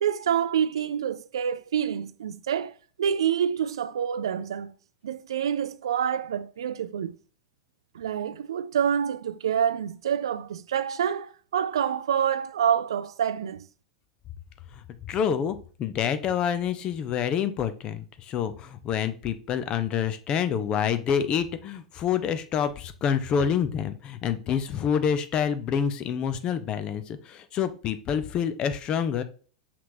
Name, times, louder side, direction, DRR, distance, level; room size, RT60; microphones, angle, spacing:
voice 1, 0.0-4.7 5.0-7.1 7.9-13.7, right 8 dB, 65° right, 0.3 m, -27 dB
voice 2, 14.7-29.2, left 8 dB, 30° left, 0.6 m, -27 dB
5.8 x 3.2 x 2.6 m
figure-of-eight pair, 90°, 3 cm